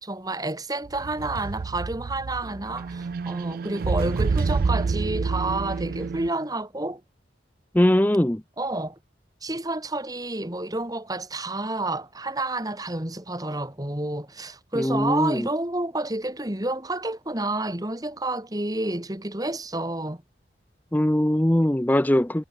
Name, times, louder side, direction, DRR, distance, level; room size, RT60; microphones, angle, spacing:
voice 1, 0.0-7.0 8.6-9.0 9.4-20.2, right 2 dB, 20° right, 2.5 m, -30 dB
sound 1, 0.9-6.3, right 4 dB, 55° right, 0.4 m, -28 dB
voice 2, 7.7-8.4 14.7-15.5 20.9-22.4, left 1 dB, 10° left, 0.6 m, -21 dB
head